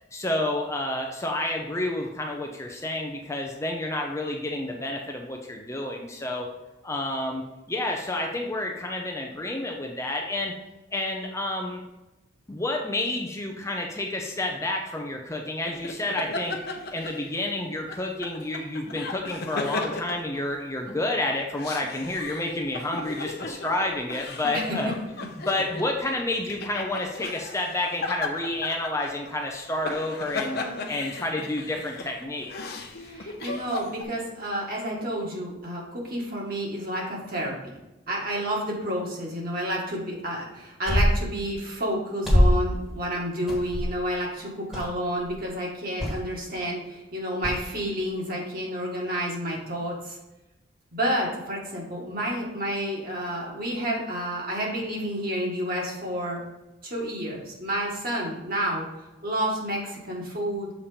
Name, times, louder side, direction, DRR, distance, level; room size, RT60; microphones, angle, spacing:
voice 1, 0.1-6.5 6.8-10.5 10.9-11.8 12.5-16.6 16.9-24.9 25.4-30.6 30.9-32.8, left 2 dB, 15° left, 1 dB, 0.6 m, -30 dB
sound 1, 15.7-17.5 17.9-20.9 21.4-34.0, left 3 dB, 50° left, 0.8 m, -36 dB
voice 2, 33.0-37.7 38.1-50.2 50.9-56.4 56.8-58.9 59.2-60.7, equal, 45° right, -2 dB, 1.9 m, -30 dB
sound 2, 40.8-41.3 42.2-42.7 43.5-44.0 44.7-44.9 45.2-45.4 46.0-46.2 47.4-47.6, equal, 5° right, 1.5 m, -22 dB
7.2 x 4.3 x 5.1 m, 1.0 s
head